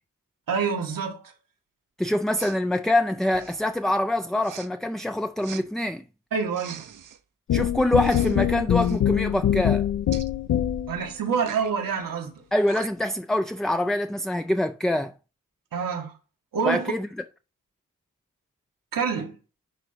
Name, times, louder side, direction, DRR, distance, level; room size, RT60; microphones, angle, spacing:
voice 1, 0.5-1.3 6.3-6.8 10.9-12.3 15.7-16.2 16.5-16.9 18.9-19.4, right 6 dB, 90° right, 1.7 m, -27 dB
voice 2, 2.0-6.0 7.5-9.9 12.5-15.1 16.6-17.1, left 1 dB, ahead, 0.3 m, -25 dB
Respiratory sounds, 2.3-2.6 3.3-3.7 4.4-4.7 5.4-5.6 6.5-7.2 8.0-8.4 8.7-9.0 10.1-10.3 11.4-11.7 12.4-12.5 12.7-13.1, right 8 dB, 70° right, 0.8 m, -42 dB
sound 1, 7.5-11.0, left 10 dB, 55° left, 0.5 m, -23 dB
10.5 x 4.0 x 4.4 m
cardioid pair, 90°, 33 cm